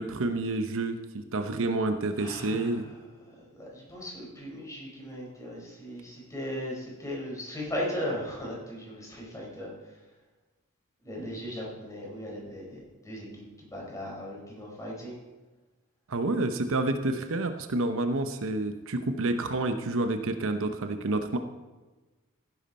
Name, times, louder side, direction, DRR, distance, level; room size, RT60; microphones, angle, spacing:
voice 1, 0.0-2.8 16.1-21.4, right 2 dB, 65° right, 7 dB, 0.9 m, -29 dB
voice 2, 2.2-2.8 3.5-9.7 11.0-13.4 13.7-15.2, equal, 15° left, -3 dB, 4.9 m, -37 dB
16.0 x 10.5 x 4.3 m, 1.2 s
head